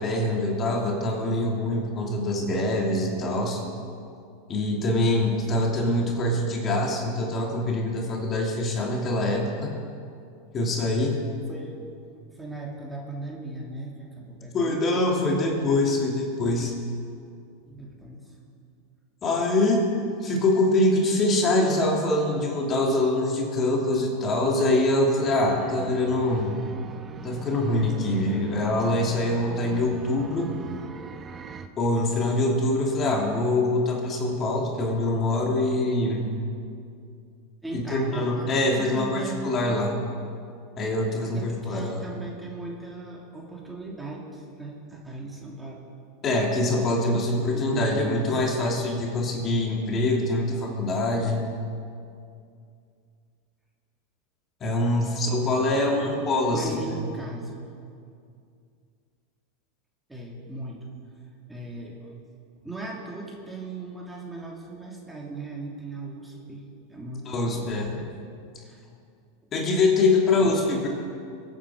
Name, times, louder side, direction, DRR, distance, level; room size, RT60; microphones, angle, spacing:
voice 1, 0.0-3.6 4.5-9.7 10.5-11.2 14.5-16.7 19.2-19.8 20.2-26.6 27.2-30.5 31.8-36.3 37.7-40.0 40.8-42.2 46.2-51.4 54.6-57.0 67.3-67.9 69.5-70.9, left 2 dB, 35° left, -1 dB, 3.0 m, -24 dB
voice 2, 11.5-11.8 12.3-14.8 17.6-18.4 19.3-19.4 37.6-39.6 41.2-45.8 47.3-48.9 55.4-56.1 56.5-57.7 60.1-60.9 61.5-62.1 62.6-68.1 68.6-68.8 70.3-70.9, right 2 dB, 5° right, -2 dB, 2.8 m, -38 dB
sound 1, 25.2-31.7, right 5 dB, 30° right, 0.9 m, -41 dB
23.0 x 9.3 x 5.0 m, 2.4 s
hypercardioid pair, 95°, 0 cm